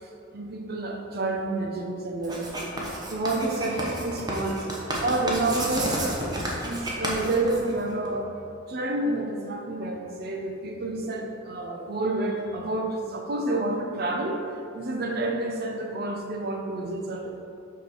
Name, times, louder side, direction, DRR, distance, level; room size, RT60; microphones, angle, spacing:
voice 1, 0.0-4.7 5.0-8.3 8.7-14.4 14.7-17.4, right 2 dB, 55° right, 2 dB, 0.8 m, -29 dB
Writing, 2.2-8.1, right 1 dB, 20° right, 1.1 m, -31 dB
6.0 x 5.8 x 4.6 m, 2.7 s
head